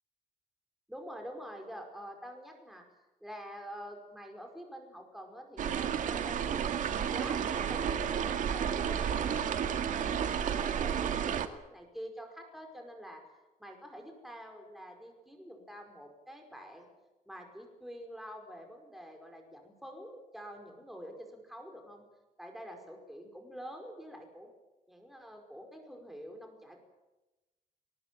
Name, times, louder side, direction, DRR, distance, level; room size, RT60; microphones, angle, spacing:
voice 1, 0.9-2.8 3.2-6.8 7.1-13.2 13.6-16.9 17.3-22.0 22.4-24.5 24.9-26.8, equal, ahead, 3 dB, 5.2 m, -47 dB
sound 1, 5.6-11.5, right 8 dB, 65° right, 2.1 m, -31 dB
23.0 x 19.5 x 9.1 m, 1.0 s
cardioid pair, 145°, 15 cm